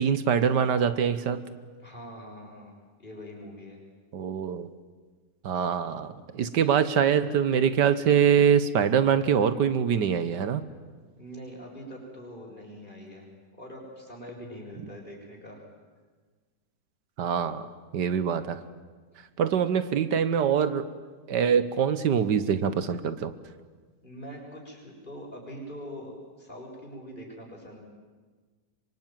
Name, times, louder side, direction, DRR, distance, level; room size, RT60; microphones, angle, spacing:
voice 1, 0.0-1.4 4.1-4.7 5.4-10.6 17.2-17.7 17.9-18.6 19.4-20.9 21.3-23.3, right 7 dB, 80° right, 12 dB, 1.7 m, -24 dB
voice 2, 1.8-2.7 3.0-3.8 11.2-13.3 13.6-15.7 24.0-27.8, equal, 30° left, -1 dB, 6.9 m, -43 dB
26.0 x 24.5 x 9.2 m, 1.4 s
omnidirectional pair, 1.8 m